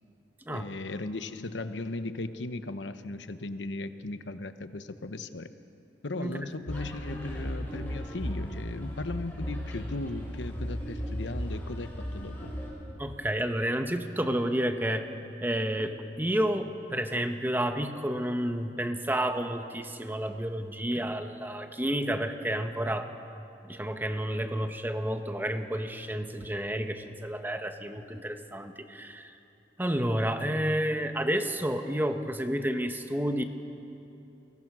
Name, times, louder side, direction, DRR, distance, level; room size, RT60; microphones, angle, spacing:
voice 1, 0.5-5.5 6.0-12.5, left 2 dB, 80° left, 10 dB, 1.0 m, -37 dB
sound 1, 6.7-12.7, equal, 10° left, 6.4 m, -36 dB
voice 2, 13.0-15.1 15.4-23.1 23.6-29.3 29.8-33.4, right 1 dB, 10° right, 6 dB, 1.1 m, -30 dB
29.5 x 22.5 x 6.2 m, 2.8 s
head